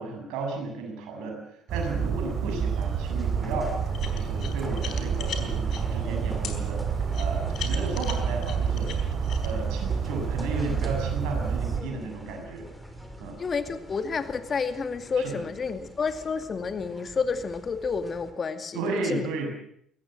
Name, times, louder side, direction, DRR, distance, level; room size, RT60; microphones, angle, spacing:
voice 1, 0.0-1.4 1.7-3.7 4.1-6.8 7.1-12.7 13.2-13.4 15.2-15.4 18.7-19.5, right 3 dB, 65° right, 3 dB, 7.2 m, -34 dB
Bird vocalization bird call bird song, 1.7-11.8, right 6 dB, 50° right, 3.2 m, -29 dB
sound 1, 3.1-18.3, equal, 5° left, 5.6 m, -43 dB
sound 2, 3.9-5.8 6.4-6.6 7.1-9.5, left 8 dB, 55° left, 4.2 m, -37 dB
voice 2, 13.4-19.3, left 5 dB, 40° left, 9 dB, 2.3 m, -30 dB
23.0 x 19.0 x 7.8 m, 0.69 s
figure-of-eight pair, 55°, 0 cm